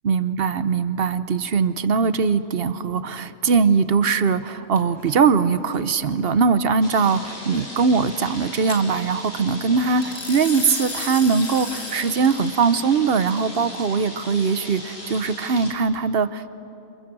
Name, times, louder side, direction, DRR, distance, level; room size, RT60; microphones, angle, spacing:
voice 1, 0.0-16.5, right 5 dB, 50° right, 13 dB, 0.9 m, -21 dB
sound 1, 4.8-5.1 8.7-8.8 10.0-12.5, left 3 dB, 60° left, 2.5 m, -34 dB
sound 2, 6.8-15.7, left 1 dB, 45° left, 4.7 m, -38 dB
28.5 x 27.5 x 7.5 m, 2.9 s
omnidirectional pair, 1.5 m